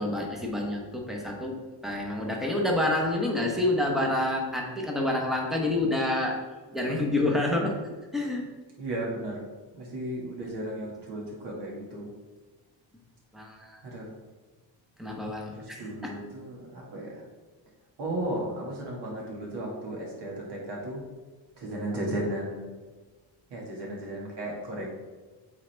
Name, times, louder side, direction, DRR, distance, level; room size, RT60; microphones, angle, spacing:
voice 1, 0.0-1.6 1.8-6.4 6.7-7.8 8.1-8.4 13.3-13.8 15.0-16.1, left 1 dB, ahead, 0 dB, 1.0 m, -28 dB
voice 2, 8.8-9.4 9.7-12.1 13.8-14.1 15.5-17.2 18.0-21.0 21.6-22.7 23.5-24.9, right 1 dB, 60° right, -3 dB, 2.1 m, -35 dB
8.4 x 4.1 x 3.4 m, 1.3 s
cardioid pair, 155°, 47 cm